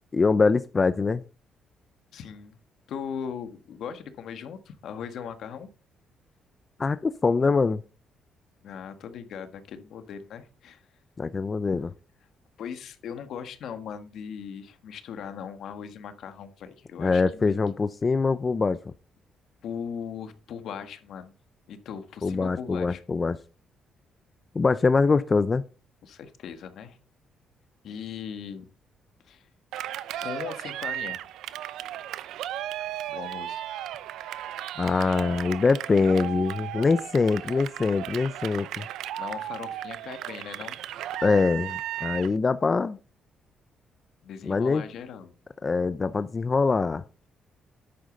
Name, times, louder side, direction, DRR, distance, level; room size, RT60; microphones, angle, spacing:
voice 1, 0.1-1.2 6.8-7.8 11.2-11.9 17.0-18.8 22.2-23.4 24.5-25.6 34.8-38.9 41.2-43.0 44.4-44.8 45.6-47.0, left 4 dB, 30° left, 13 dB, 0.5 m, -23 dB
voice 2, 2.1-2.6 2.9-5.7 8.6-10.8 12.6-17.6 19.6-21.3 21.7-23.0 26.0-27.0 27.8-28.7 29.2-29.5 30.2-31.2 33.1-33.6 39.2-40.8 44.2-45.3, left 7 dB, 70° left, 9 dB, 1.5 m, -39 dB
Cheering, 29.7-42.4, right 12 dB, 85° right, 0.6 m, -35 dB
10.5 x 8.8 x 4.0 m, 0.35 s
cardioid pair, 90°, 0 cm